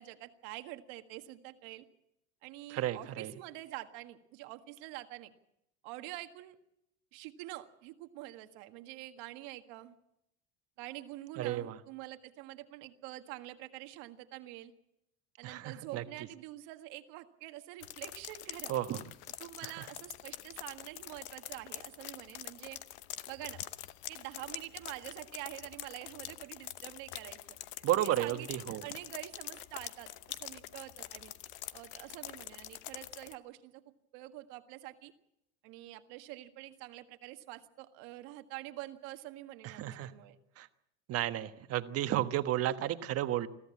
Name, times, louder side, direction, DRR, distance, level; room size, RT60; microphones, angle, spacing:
voice 1, 0.0-1.9 2.4-5.3 5.8-6.6 7.1-9.9 10.8-14.7 15.4-18.7 19.4-22.8 23.3-23.6 24.1-27.6 28.0-31.3 31.7-33.8 34.1-35.1 35.6-40.4, right 16 dB, 65° right, 8 dB, 1.7 m, -46 dB
voice 2, 2.7-3.3 11.4-11.8 15.4-16.0 18.7-19.0 19.6-19.9 27.8-28.8 39.6-40.1 40.6-40.7 41.1-43.5, right 13 dB, 45° right, 9 dB, 1.3 m, -33 dB
sound 1, 17.8-33.3, left 15 dB, 65° left, 1.0 m, -45 dB
21.5 x 14.0 x 8.5 m, 0.84 s
supercardioid pair, 120°, 34 cm